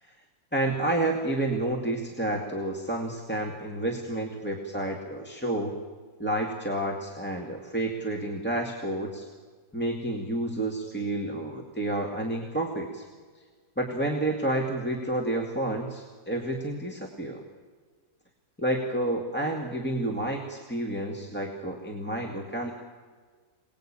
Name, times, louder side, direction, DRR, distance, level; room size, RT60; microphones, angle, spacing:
voice 1, 0.5-5.8 6.2-9.3 9.7-13.0 13.8-17.4 18.6-22.7, right 1 dB, 5° left, 0 dB, 2.0 m, -30 dB
27.5 x 19.5 x 8.8 m, 1.5 s
omnidirectional pair, 1.7 m